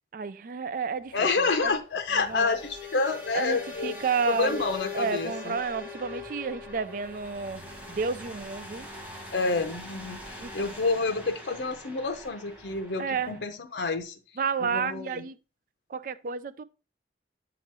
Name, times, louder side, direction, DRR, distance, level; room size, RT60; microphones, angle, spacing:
voice 1, 0.1-1.3 1.6-1.7 2.1-2.6 3.3-7.6 7.9-8.9 10.4-10.5 13.0-13.3 14.4-15.4 15.9-16.6, right 5 dB, 50° right, 0.3 m, -31 dB
sound 1, 1.0-13.4, left 3 dB, 10° right, 1.0 m, -42 dB
voice 2, 1.1-3.9 4.3-5.6 9.3-14.2 14.6-15.2, left 4 dB, 85° left, 0.7 m, -29 dB
7.6 x 3.0 x 4.6 m
head